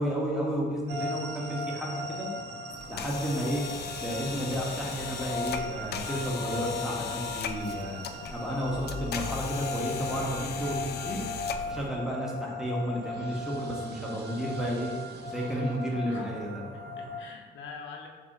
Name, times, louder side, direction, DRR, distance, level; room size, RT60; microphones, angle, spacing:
voice 1, 0.0-2.3 2.9-3.6 4.0-8.0 8.3-11.2 11.7-14.9 15.3-16.6, equal, 5° right, -4 dB, 1.1 m, -32 dB
sound 1, 0.9-17.2, left 1 dB, 55° right, 0.7 m, -38 dB
sound 2, 2.7-11.9, left 7 dB, 55° left, 0.4 m, -37 dB
voice 2, 15.3-15.7 16.0-16.3 16.7-18.1, left 5 dB, 70° left, 1 dB, 0.8 m, -45 dB
6.8 x 2.7 x 2.7 m, 1.5 s
cardioid pair, 90°, 20 cm